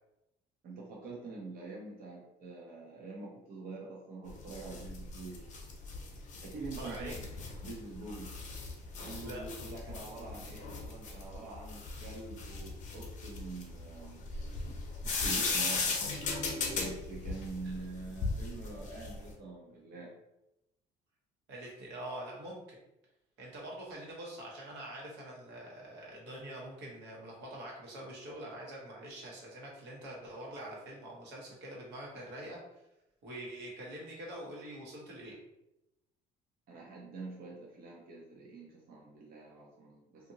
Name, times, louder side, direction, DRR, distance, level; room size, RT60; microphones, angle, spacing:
voice 1, 0.6-5.4 6.4-7.1 7.6-8.3 9.0-16.0 16.8-20.1 36.7-40.3, right 3 dB, 60° right, -3 dB, 0.7 m, -45 dB
sound 1, 4.3-19.3, left 4 dB, 45° left, 0.7 m, -37 dB
voice 2, 6.8-7.3 9.2-9.5 17.6-17.8 21.5-22.8 23.4-32.6 33.2-35.4, right 1 dB, 90° right, -3 dB, 1.1 m, -45 dB
2.7 x 2.5 x 2.7 m, 0.89 s
cardioid pair, 110°, 17 cm